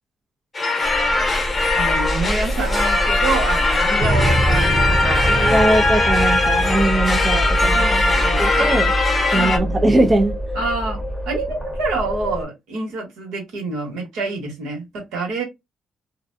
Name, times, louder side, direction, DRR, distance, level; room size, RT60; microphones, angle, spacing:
sound 1, 0.5-9.6, left 3 dB, 25° left, 0.8 m, -20 dB
sound 2, 0.8-12.4, equal, 10° right, 0.9 m, -24 dB
voice 1, 1.7-5.7 7.7-8.7 9.3-9.8 10.5-15.4, right 3 dB, 90° right, 1.3 m, -27 dB
voice 2, 5.3-8.0 8.4-8.9 9.3-10.4, right 1 dB, 25° right, 0.4 m, -20 dB
2.4 x 2.2 x 2.6 m
cardioid pair, 90°, 0 cm